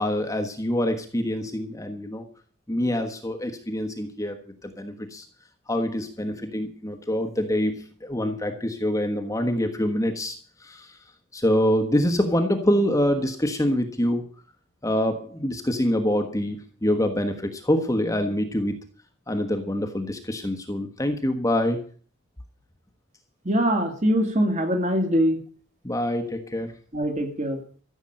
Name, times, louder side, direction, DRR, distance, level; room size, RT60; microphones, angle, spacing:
voice 1, 0.0-2.2 2.7-4.4 4.6-5.2 5.7-10.4 10.6-11.0 11.3-14.2 14.8-18.7 19.3-21.8 25.8-26.7, equal, 15° left, 5 dB, 1.2 m, -25 dB
voice 2, 23.4-25.4 26.9-27.6, equal, 35° right, 5 dB, 2.5 m, -23 dB
14.5 x 7.1 x 8.8 m, 0.43 s
head